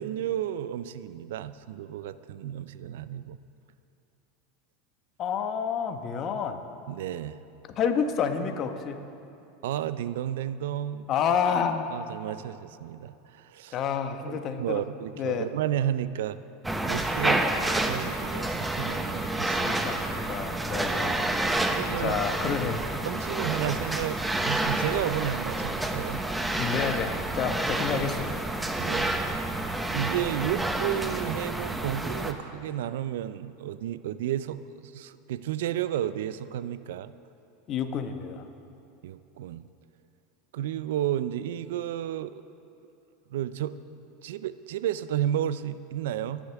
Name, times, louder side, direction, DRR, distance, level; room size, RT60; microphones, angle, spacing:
voice 1, 0.0-3.4 6.9-7.4 9.6-11.1 11.9-13.8 14.3-16.4 16.9-17.4 17.8-19.8 20.9-21.2 21.7-22.6 23.0-26.2 28.8-29.2 29.9-37.1 39.0-39.6 40.5-42.4 43.3-43.7 44.2-46.4, right 11 dB, 75° right, 14 dB, 0.5 m, -32 dB
voice 2, 5.2-6.6 7.7-9.0 11.1-12.0 13.7-14.8 15.2-15.5 17.2-17.5 19.7-21.3 22.0-22.8 26.5-28.5 37.7-38.5, left 7 dB, 45° left, 7 dB, 1.3 m, -29 dB
sound 1, 16.6-32.3, right 1 dB, 10° right, 1.0 m, -29 dB
25.5 x 10.0 x 3.5 m, 2.7 s
hypercardioid pair, 100°, 0 cm